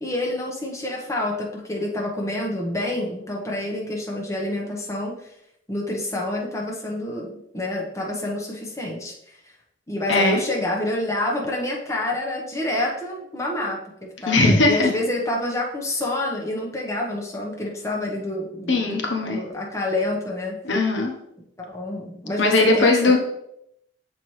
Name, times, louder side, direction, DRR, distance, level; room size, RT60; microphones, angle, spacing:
voice 1, 0.0-5.3 5.7-9.5 9.9-20.6 21.6-23.2, left 1 dB, 15° left, -2 dB, 1.0 m, -28 dB
voice 2, 10.1-10.4 14.3-14.9 18.7-19.4 20.6-21.1 22.4-23.2, left 2 dB, 75° left, 2 dB, 0.9 m, -19 dB
6.9 x 4.4 x 3.2 m, 0.76 s
head